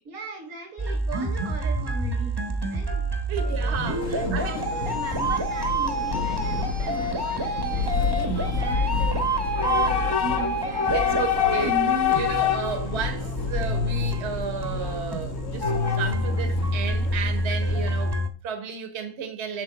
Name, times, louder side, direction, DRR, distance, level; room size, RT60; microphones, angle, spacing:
voice 1, 0.1-2.4 2.7-3.1 3.4-3.6 3.8-9.3 9.6-11.3, right 4 dB, 75° right, 2.2 m, -38 dB
sound 1, 0.8-18.3, right 1 dB, 20° right, 1.1 m, -28 dB
Train / Subway metro underground, 3.3-18.2, left 6 dB, 65° left, 1.2 m, -28 dB
voice 2, 3.3-4.6 10.9-11.8 12.1-19.6, right 7 dB, 50° right, 1.4 m, -33 dB
8.3 x 7.2 x 4.1 m
omnidirectional pair, 1.5 m